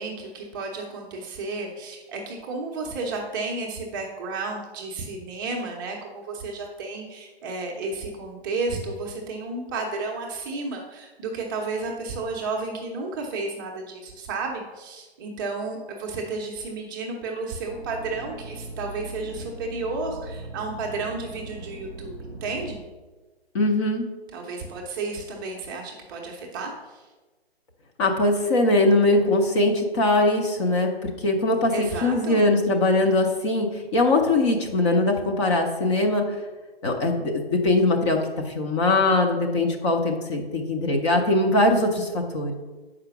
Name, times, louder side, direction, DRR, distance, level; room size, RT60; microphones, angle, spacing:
voice 1, 0.0-22.8 24.3-27.0 31.7-32.4, right 3 dB, 20° right, 0 dB, 0.7 m, -32 dB
sound 1, 17.7-22.8, right 2 dB, 90° left, 2.3 m, -39 dB
voice 2, 23.5-24.1 28.0-36.2 36.8-38.2 38.5-42.5, left 2 dB, 30° left, 2 dB, 0.7 m, -21 dB
6.6 x 5.0 x 5.7 m, 1.3 s
figure-of-eight pair, 135°, 32 cm